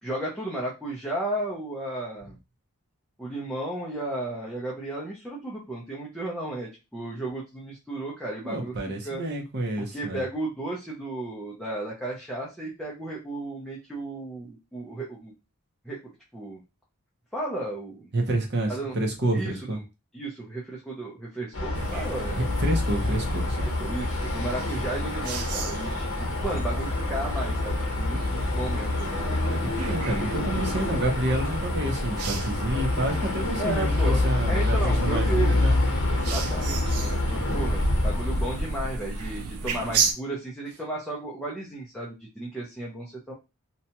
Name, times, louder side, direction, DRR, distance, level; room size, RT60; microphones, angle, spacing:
voice 1, 0.0-2.4 3.2-8.7 9.0-9.2 9.8-15.3 15.8-16.0 16.3-16.6 17.3-18.1 18.7-19.0 19.3-19.6 20.1-22.4 23.6-29.3 33.6-35.6 36.1-43.3, right 2 dB, ahead, -5 dB, 0.5 m, -34 dB
voice 2, 8.4-10.2 18.1-19.8 22.3-23.6 29.4-35.8, right 1 dB, 50° right, 2 dB, 0.7 m, -29 dB
sound 1, 21.5-38.9, left 2 dB, 60° left, 0.9 m, -27 dB
sound 2, 21.7-40.1, right 4 dB, 80° right, 0.4 m, -35 dB
2.8 x 2.2 x 2.8 m, 0.26 s
head